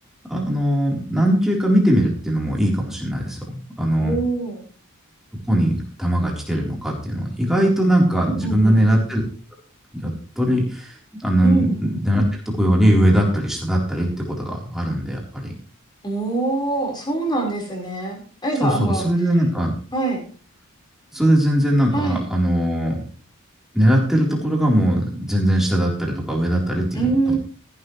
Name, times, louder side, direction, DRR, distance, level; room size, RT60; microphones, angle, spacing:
voice 1, 0.3-4.1 5.5-9.2 10.0-10.9 11.2-12.2 12.6-15.5 18.6-19.7 21.1-23.0 23.7-27.4, equal, ahead, -3 dB, 4.0 m, -20 dB
voice 2, 4.0-4.6 8.3-8.8 11.4-11.9 16.0-19.0 19.9-20.2 21.9-22.2 26.9-27.4, right 3 dB, 20° left, 0 dB, 4.9 m, -24 dB
14.5 x 12.0 x 3.3 m, 0.39 s
head